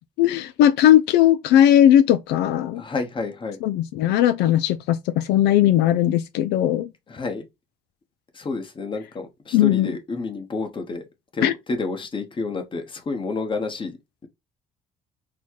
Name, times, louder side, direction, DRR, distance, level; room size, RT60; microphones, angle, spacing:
voice 1, 0.2-2.8 3.6-6.9 9.5-9.9 11.4-11.5, left 11 dB, 85° left, 0.4 m, -18 dB
voice 2, 2.7-3.6 7.1-7.5 8.3-11.0 11.3-14.0, left 3 dB, 30° left, 1.1 m, -29 dB
4.2 x 2.2 x 4.5 m
cardioid pair, 110°, 17 cm